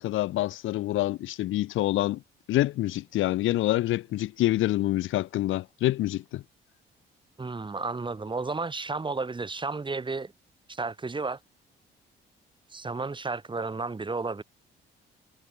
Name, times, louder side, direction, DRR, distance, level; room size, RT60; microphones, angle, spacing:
voice 1, 0.0-2.2 2.5-6.4, left 15 dB, 85° left, 1.1 m, -26 dB
voice 2, 7.4-10.3 10.7-11.4 12.7-14.4, right 3 dB, 25° right, 3.4 m, -32 dB
cardioid pair, 90°, 20 cm